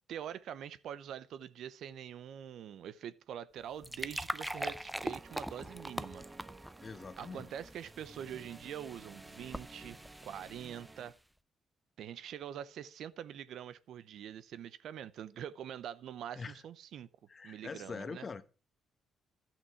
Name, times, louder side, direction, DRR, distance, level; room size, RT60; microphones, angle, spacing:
voice 1, 0.1-6.2 7.2-10.0 10.2-11.2 12.0-17.1 17.4-18.3, right 9 dB, 70° right, 0.6 m, -44 dB
sound 1, 3.6-11.1, right 1 dB, 5° right, 0.5 m, -43 dB
sound 2, 5.0-11.1, right 2 dB, 25° right, 1.0 m, -55 dB
voice 2, 6.8-7.5 16.4-16.6 17.3-18.5, left 4 dB, 35° left, 1.1 m, -43 dB
12.5 x 6.1 x 4.6 m
cardioid pair, 85°, 0 cm